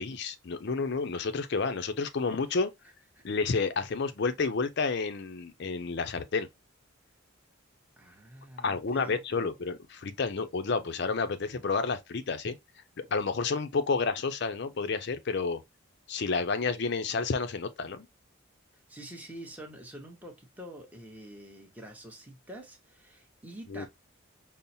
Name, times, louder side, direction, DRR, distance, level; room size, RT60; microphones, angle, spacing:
voice 1, 0.0-2.7 3.2-6.5 8.6-12.6 13.0-15.6 16.1-18.1 23.7-23.9, left 4 dB, 55° left, 0.5 m, -30 dB
voice 2, 8.0-9.5 18.9-23.9, right 1 dB, 10° right, 0.8 m, -46 dB
5.4 x 2.0 x 2.7 m
head